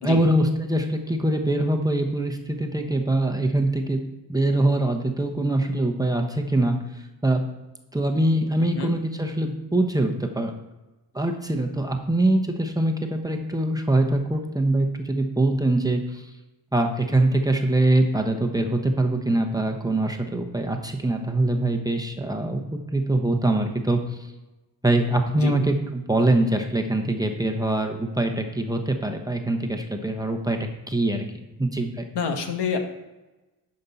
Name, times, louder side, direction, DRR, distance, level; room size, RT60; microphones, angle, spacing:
voice 1, 0.0-4.0 4.3-6.8 7.2-7.4 7.9-10.5 11.1-16.2 16.7-24.0 24.8-32.1, right 1 dB, 10° right, 2 dB, 0.9 m, -23 dB
voice 2, 8.6-9.0 25.4-25.5 32.1-32.8, left 6 dB, 75° left, 5 dB, 1.3 m, -27 dB
11.0 x 5.3 x 4.1 m, 1.1 s
cardioid pair, 90°, 42 cm